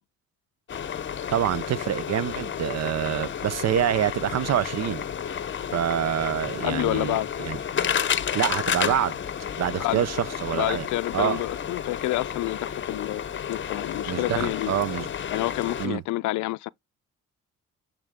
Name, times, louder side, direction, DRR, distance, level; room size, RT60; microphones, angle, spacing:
sound 1, 0.7-15.9, left 8 dB, 40° left, 0.7 m, -31 dB
voice 1, 1.3-5.0 5.7-7.6 8.3-9.2 9.6-10.9 11.1-11.4 14.1-15.1 15.8-16.0, right 10 dB, 60° right, 0.6 m, -26 dB
voice 2, 6.6-7.3 9.8-10.0 10.5-13.2 13.5-14.7 15.3-16.7, left 17 dB, 75° left, 0.4 m, -28 dB
8.8 x 3.7 x 3.5 m
cardioid pair, 90°, 30 cm